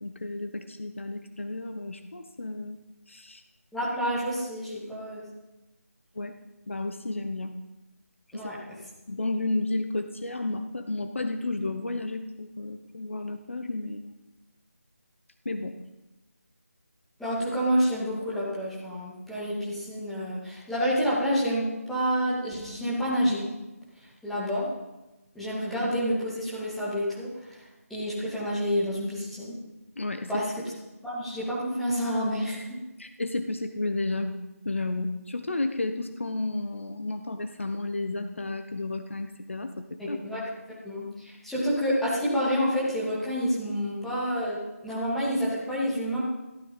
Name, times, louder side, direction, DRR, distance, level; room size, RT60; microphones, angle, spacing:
voice 1, 0.0-2.8 3.1-3.4 6.1-6.3 6.7-7.5 8.3-8.5 9.1-14.1 15.4-15.7 30.0-30.3 33.0-40.2, left 2 dB, 55° left, 8 dB, 1.1 m, -32 dB
voice 2, 3.7-5.2 8.3-8.6 17.2-23.5 24.2-24.7 25.3-27.6 27.9-29.6 30.3-30.7 31.0-32.7 40.0-40.4 40.8-46.2, equal, ahead, -10 dB, 2.6 m, -28 dB
15.5 x 12.5 x 5.6 m, 1.0 s
figure-of-eight pair, 160°, 8 cm